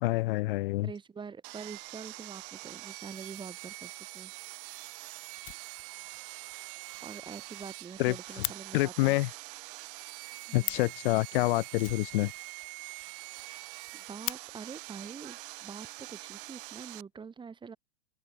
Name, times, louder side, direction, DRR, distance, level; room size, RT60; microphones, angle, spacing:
voice 1, 0.0-0.9 8.0-8.1 8.7-9.3 10.5-12.3, left 20 dB, 50° left, 1.9 m, -27 dB
voice 2, 0.8-4.3 7.0-9.2 10.5-10.8 13.9-17.8, right 5 dB, 15° right, 3.2 m, -45 dB
Sawing, 1.4-17.0, right 23 dB, 50° right, 3.5 m, -45 dB
Fire, 4.2-4.3 4.6-4.7 5.0-5.1 5.3-6.2 6.5-6.6 6.9-7.0 7.3-7.4 7.6-8.6 10.3-10.4 10.6-11.0 11.8-12.7 13.0-13.1 13.4-13.5 13.9-14.4 15.4-15.5 16.2-16.8, left 22 dB, 35° left, 2.0 m, -39 dB
hypercardioid pair, 120°, 34 cm